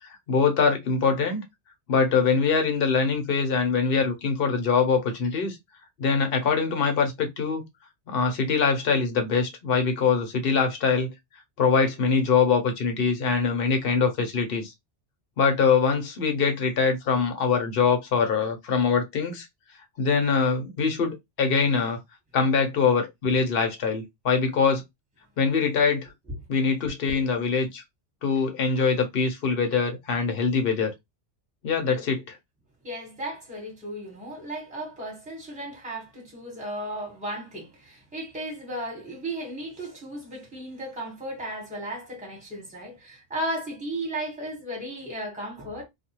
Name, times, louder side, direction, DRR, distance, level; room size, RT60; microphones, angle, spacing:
voice 1, 0.3-1.4 1.9-5.6 6.0-7.6 8.1-11.1 11.6-14.7 15.4-19.5 20.0-22.0 22.3-24.8 25.4-26.1 26.5-27.8 28.2-30.9 31.6-32.2, left 5 dB, 55° left, 0.9 m, -23 dB
voice 2, 32.8-45.8, right 1 dB, 5° right, 1.2 m, -35 dB
2.5 x 2.2 x 2.9 m
omnidirectional pair, 1.2 m